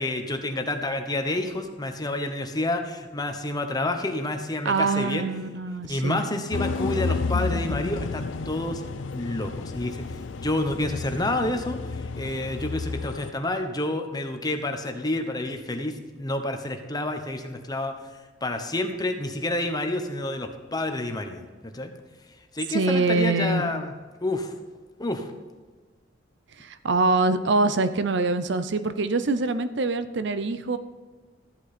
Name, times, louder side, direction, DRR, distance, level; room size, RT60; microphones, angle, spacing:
voice 1, 0.0-5.2 5.9-8.8 9.1-17.9 18.4-21.9 22.5-23.9 24.2-24.5 25.0-25.3, left 2 dB, 20° left, 5 dB, 1.0 m, -29 dB
voice 2, 4.6-6.2 22.7-23.6 26.6-30.8, right 3 dB, 65° right, 11 dB, 0.7 m, -24 dB
sound 1, 6.5-13.3, left 4 dB, 75° left, 0.5 m, -31 dB
14.0 x 8.0 x 4.3 m, 1.4 s
head